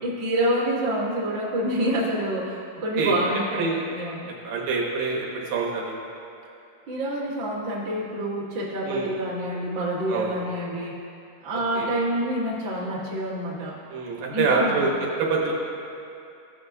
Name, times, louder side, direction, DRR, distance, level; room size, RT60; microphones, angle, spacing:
voice 1, 0.0-4.3 6.9-11.0 11.4-13.8 14.3-14.8, right 1 dB, 40° right, -7 dB, 1.8 m, -27 dB
voice 2, 4.4-6.0 8.9-9.1 10.1-10.3 11.8-11.9 13.9-14.9 15.2-15.5, right 4 dB, 80° right, -3 dB, 2.7 m, -25 dB
15.5 x 6.5 x 2.6 m, 2.6 s
omnidirectional pair, 3.9 m